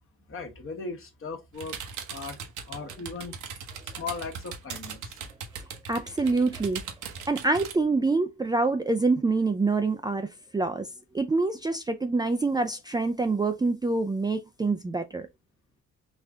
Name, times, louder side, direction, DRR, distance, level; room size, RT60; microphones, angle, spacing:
voice 1, 0.3-1.8 2.1-2.4 2.6-3.4 3.8-5.3, left 4 dB, 45° left, 1.3 m, -38 dB
sound 1, 1.5-7.7, right 6 dB, 75° right, 1.0 m, -39 dB
voice 2, 5.9-6.8 7.3-10.9 11.1-15.3, right 3 dB, 15° right, 0.4 m, -26 dB
4.2 x 2.6 x 3.4 m
cardioid pair, 90°, 30 cm